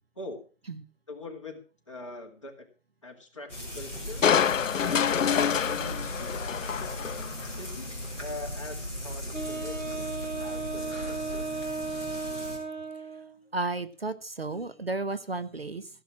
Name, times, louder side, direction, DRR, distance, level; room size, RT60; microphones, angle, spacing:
voice 1, 0.2-0.5 1.1-1.6 1.9-2.7 3.0-4.4 4.8-6.4 7.6-10.1 10.4-11.5, left 2 dB, 25° left, 0 dB, 2.2 m, -43 dB
Frying (food), 3.5-12.6, left 1 dB, 5° right, 3.9 m, -38 dB
Crushing, 4.2-7.6 8.0-8.1, left 8 dB, 80° left, 0.5 m, -26 dB
Wind instrument woodwind instrument, 9.3-13.4, right 4 dB, 70° right, 3.4 m, -35 dB
voice 2, 13.5-15.9, right 2 dB, 50° right, 12 dB, 1.2 m, -33 dB
16.5 x 8.2 x 6.0 m, 0.36 s
figure-of-eight pair, 175°, 38 cm